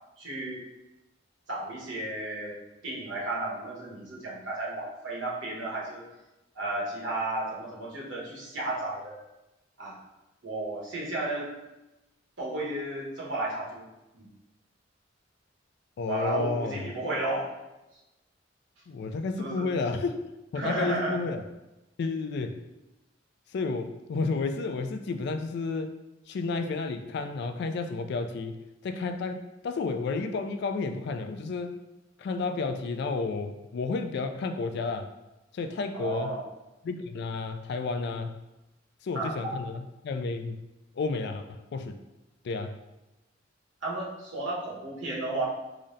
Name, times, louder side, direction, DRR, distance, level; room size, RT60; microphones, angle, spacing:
voice 1, 0.2-0.7 1.5-2.6 2.8-6.0 6.5-9.2 9.8-10.0 10.4-11.5 12.4-13.8 14.1-14.3 16.0-17.5 19.4-19.7 20.6-21.2 35.9-36.4 39.1-39.6 43.8-45.4, right 2 dB, 75° right, -4 dB, 1.1 m, -33 dB
voice 2, 16.0-16.9 18.9-20.2 20.5-21.4 22.0-22.6 23.5-26.0 26.3-31.8 32.2-35.1 35.5-36.4 36.8-38.3 39.0-40.6 41.0-42.0 42.4-42.8, left 4 dB, 60° left, 8 dB, 0.3 m, -31 dB
3.9 x 2.1 x 3.8 m, 0.99 s
head